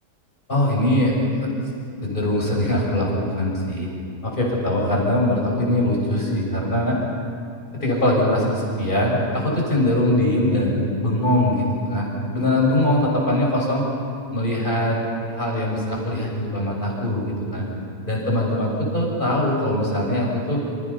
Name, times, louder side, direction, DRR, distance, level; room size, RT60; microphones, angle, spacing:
voice 1, 0.5-1.1 1.4-1.5 2.0-3.9 4.2-7.0 7.7-13.8 14.3-15.0 15.3-17.7 18.1-20.6, left 1 dB, 30° left, -3 dB, 7.0 m, -22 dB
29.5 x 28.5 x 5.7 m, 2.5 s
omnidirectional pair, 1.7 m